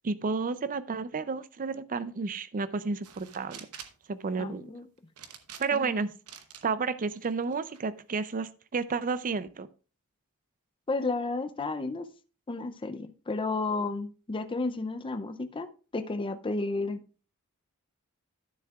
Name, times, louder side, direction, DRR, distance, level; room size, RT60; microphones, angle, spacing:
voice 1, 0.0-3.7 4.1-4.7 5.6-6.1 6.6-9.7, right 4 dB, 40° right, 0.5 m, -31 dB
sound 1, 3.0-4.0 5.2-5.9 6.3-6.6 7.2-7.8, right 9 dB, 80° right, 0.9 m, -47 dB
voice 2, 4.4-4.8 5.7-6.0 10.9-12.1 12.5-17.0, left 3 dB, 25° left, 0.5 m, -32 dB
12.5 x 7.0 x 2.4 m
head